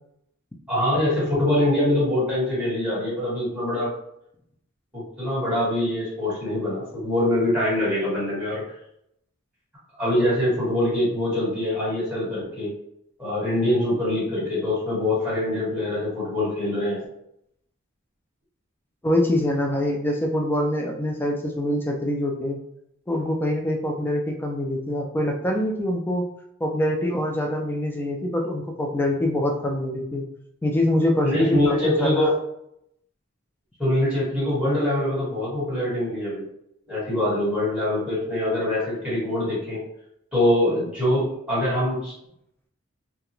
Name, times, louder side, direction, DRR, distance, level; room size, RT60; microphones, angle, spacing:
voice 1, 0.7-3.9 4.9-8.6 10.0-12.7 13.2-17.0 31.2-32.4 33.8-36.4 36.9-39.8 40.3-42.1, left 1 dB, 5° right, -10 dB, 1.3 m, -24 dB
voice 2, 19.0-22.6 23.1-26.3 26.6-30.2 30.6-32.4, left 1 dB, 10° left, 1 dB, 0.4 m, -24 dB
2.4 x 2.2 x 2.9 m, 0.75 s
head